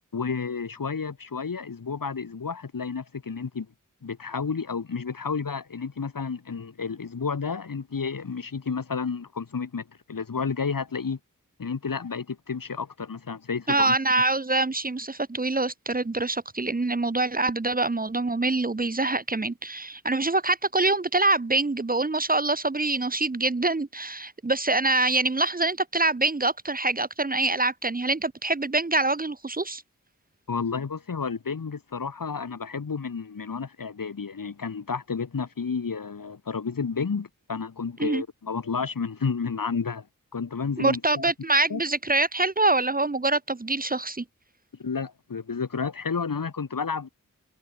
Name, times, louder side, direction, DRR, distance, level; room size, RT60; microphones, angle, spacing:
voice 1, 0.1-3.7 4.0-11.2 11.6-14.0 30.5-40.1 40.3-41.3 41.7-41.8 44.8-47.1, left 5 dB, 90° left, 3.5 m, -31 dB
voice 2, 13.7-29.8 38.0-38.2 40.8-44.2, right 2 dB, 25° right, 0.9 m, -25 dB
wide cardioid pair, 50°, 33 cm